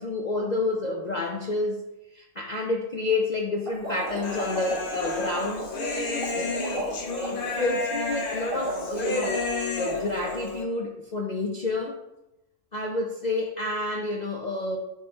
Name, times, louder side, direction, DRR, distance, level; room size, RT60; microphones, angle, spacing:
voice 1, 0.0-1.8 2.1-5.6 6.4-9.4 9.8-12.0 12.7-14.8, left 2 dB, 75° left, 0 dB, 0.4 m, -29 dB
sound 1, 3.7-10.1, equal, 40° right, 1.7 m, -35 dB
Human voice, 4.2-10.6, left 3 dB, 45° left, 0.9 m, -31 dB
9.5 x 3.2 x 3.3 m, 0.93 s
omnidirectional pair, 1.6 m